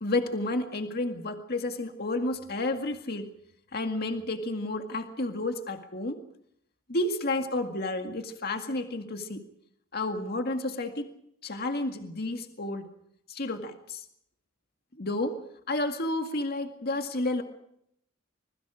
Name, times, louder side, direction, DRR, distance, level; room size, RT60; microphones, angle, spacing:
voice 1, 0.0-3.3 3.7-6.2 6.9-9.4 9.9-11.1 11.4-12.9 13.3-14.1 15.0-15.4 15.7-17.4, left 2 dB, 50° left, 6 dB, 2.0 m, -31 dB
25.5 x 21.5 x 4.9 m, 0.73 s
head